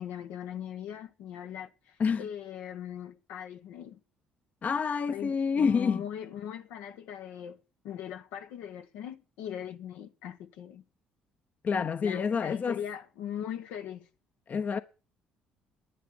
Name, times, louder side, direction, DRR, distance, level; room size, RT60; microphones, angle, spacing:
voice 1, 0.0-4.0 5.1-7.6 7.8-10.8 12.0-14.0, left 9 dB, 80° left, 1.3 m, -40 dB
voice 2, 4.6-6.0 11.6-12.8 14.5-14.8, left 6 dB, 45° left, 1.0 m, -28 dB
11.0 x 9.7 x 8.8 m
supercardioid pair, 65°, 4 cm